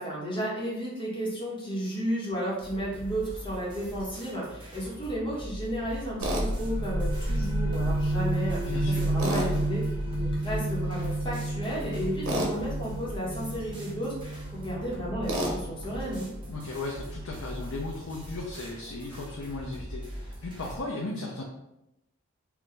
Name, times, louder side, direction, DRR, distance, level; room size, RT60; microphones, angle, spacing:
voice 1, 0.0-9.8 10.2-16.3, equal, 20° left, -5 dB, 1.3 m, -33 dB
sound 1, 2.6-20.8, equal, 25° right, 0.9 m, -42 dB
sound 2, 6.2-17.6, right 1 dB, 55° left, 1.1 m, -31 dB
Tools, 6.2-6.5 9.2-9.5 12.2-12.5 15.3-15.6, right 1 dB, 85° right, 1.0 m, -29 dB
voice 2, 8.6-9.4 16.5-21.4, left 2 dB, 75° left, -2 dB, 0.6 m, -36 dB
4.7 x 2.6 x 3.3 m, 0.86 s
head